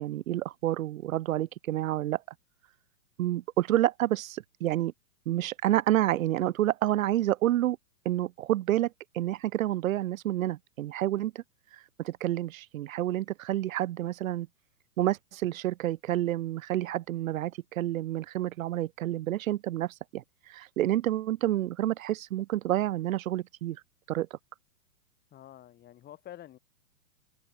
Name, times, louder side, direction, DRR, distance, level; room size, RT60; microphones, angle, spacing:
voice 1, 0.0-2.2 3.2-4.9 5.3-7.8 8.0-11.4 12.0-14.5 15.0-20.2 20.5-23.8 24.1-24.3, right 14 dB, 55° right, 0.9 m, -29 dB
voice 2, 25.3-26.6, left 12 dB, 20° left, 3.1 m, -48 dB
open air
hypercardioid pair, 135°, 47 cm